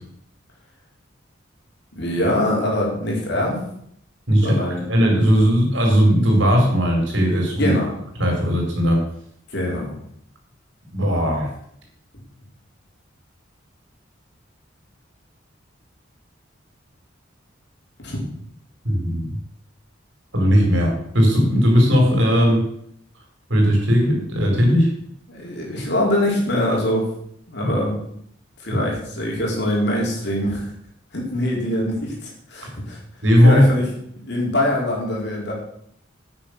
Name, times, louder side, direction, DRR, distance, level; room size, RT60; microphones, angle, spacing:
voice 1, 1.9-3.6 4.4-4.9 7.6-7.9 9.5-9.9 12.1-12.2 18.0-18.2 25.3-27.1 27.5-28.0 28.6-30.7 31.1-33.0 33.4-33.9 34.3-35.5, left 1 dB, 60° left, -2 dB, 4.4 m, -23 dB
voice 2, 4.9-7.7 8.2-9.0 10.9-11.5 18.8-19.3 20.3-22.6 23.5-24.9 33.2-33.6, equal, 70° right, 0 dB, 4.4 m, -17 dB
9.3 x 9.0 x 6.3 m, 0.69 s
head